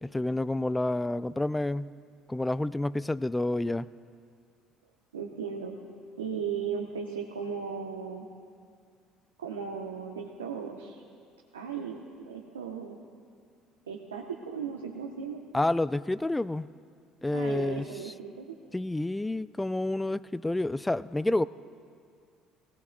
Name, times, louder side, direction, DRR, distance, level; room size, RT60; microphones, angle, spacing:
voice 1, 0.0-1.9 2.3-3.9 15.5-16.7 17.2-17.9 18.7-21.5, left 2 dB, 10° left, 18 dB, 0.4 m, -29 dB
voice 2, 5.1-5.7 6.2-8.3 9.4-11.0 11.5-12.0 12.3-13.0 13.9-15.4 17.3-18.6, right 6 dB, 85° right, 1 dB, 0.8 m, -36 dB
20.0 x 16.5 x 2.2 m, 2.2 s
hypercardioid pair, 60°, 0 cm